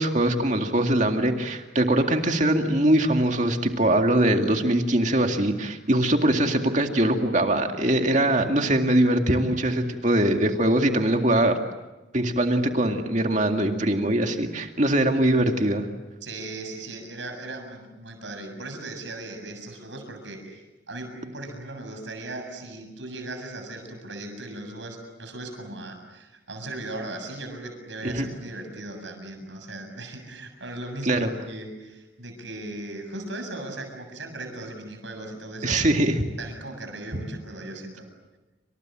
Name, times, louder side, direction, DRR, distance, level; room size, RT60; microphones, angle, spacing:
voice 1, 0.0-11.6 12.1-15.9 28.0-28.3 31.1-31.3 35.6-36.1 37.1-37.2, right 1 dB, 40° right, 4 dB, 2.2 m, -22 dB
voice 2, 16.2-35.8 36.4-38.1, right 2 dB, 75° right, 5 dB, 7.4 m, -38 dB
28.5 x 26.5 x 7.6 m, 1.1 s
head